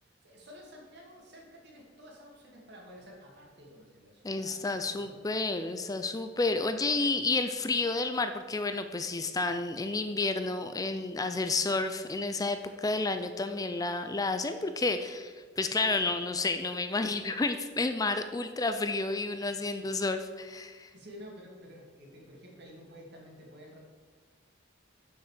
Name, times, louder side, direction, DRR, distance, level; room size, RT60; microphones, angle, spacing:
voice 1, 0.2-5.3 15.7-15.8 20.9-23.8, equal, 60° right, -1 dB, 2.5 m, -51 dB
voice 2, 4.2-20.9, left 3 dB, 20° left, 8 dB, 0.4 m, -31 dB
7.3 x 6.3 x 6.7 m, 1.5 s
head